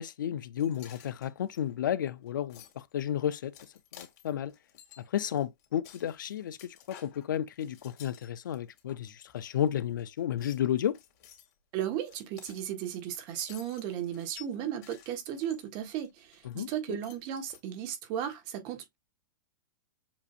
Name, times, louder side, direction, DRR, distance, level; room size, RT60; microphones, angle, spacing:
voice 1, 0.0-3.5 3.9-4.5 5.0-11.0 16.5-17.0, left 10 dB, 80° left, 0.6 m, -32 dB
sound 1, 0.6-8.8 9.3-10.0 10.4-16.7 17.0-17.6, left 10 dB, 55° left, 2.1 m, -54 dB
voice 2, 11.7-19.0, right 10 dB, 45° right, 1.4 m, -35 dB
7.2 x 2.7 x 2.4 m
hypercardioid pair, 135°, 10 cm